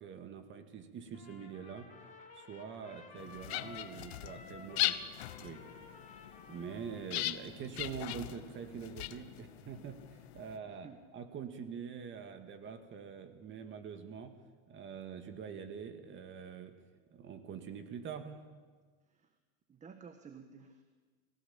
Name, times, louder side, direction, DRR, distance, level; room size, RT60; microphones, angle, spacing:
voice 1, 0.0-1.9 2.3-5.0 5.4-5.6 6.5-14.3 14.7-16.7 17.1-18.4, right 7 dB, 40° right, 8 dB, 2.1 m, -45 dB
Trumpet, 1.1-7.7, left 5 dB, 25° left, 4.0 m, -54 dB
sound 1, 3.2-10.6, left 16 dB, 85° left, 1.1 m, -40 dB
voice 2, 10.6-11.0 19.1-19.3 19.7-20.8, right 6 dB, 25° right, 8 dB, 1.5 m, -53 dB
25.0 x 16.5 x 8.8 m, 1.5 s
supercardioid pair, 130°, 31 cm